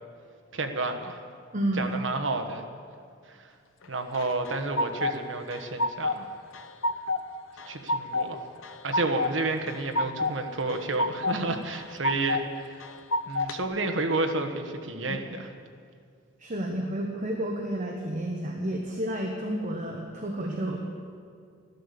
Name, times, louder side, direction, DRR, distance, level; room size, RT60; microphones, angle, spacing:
voice 1, 0.5-1.2 1.7-2.6 3.3-3.5 3.9-6.3 7.7-8.4 8.8-12.8 13.3-15.5, right 2 dB, 65° right, 6 dB, 1.2 m, -30 dB
voice 2, 1.5-2.0 15.1-15.2 16.4-20.8, right 1 dB, 40° right, 1 dB, 1.2 m, -31 dB
sound 1, 4.1-5.2 5.5-6.2 6.5-7.2 7.6-8.3 8.6-9.3 9.7-10.3 10.7-11.4 11.7-12.4 12.8-13.6, left 2 dB, 90° left, 0.8 m, -28 dB
14.5 x 12.0 x 6.8 m, 2.2 s
head